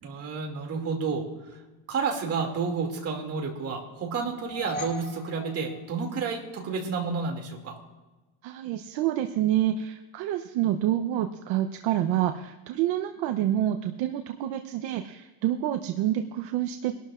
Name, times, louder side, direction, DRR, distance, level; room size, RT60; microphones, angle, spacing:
voice 1, 0.0-1.3 1.9-7.8, right 5 dB, 30° right, 1 dB, 2.5 m, -30 dB
sound 1, 4.2-6.5, left 1 dB, 20° left, 4.3 m, -40 dB
voice 2, 8.4-17.0, right 12 dB, 60° right, 7 dB, 0.8 m, -27 dB
23.0 x 12.5 x 2.5 m, 1.2 s
cardioid pair, 145°, 47 cm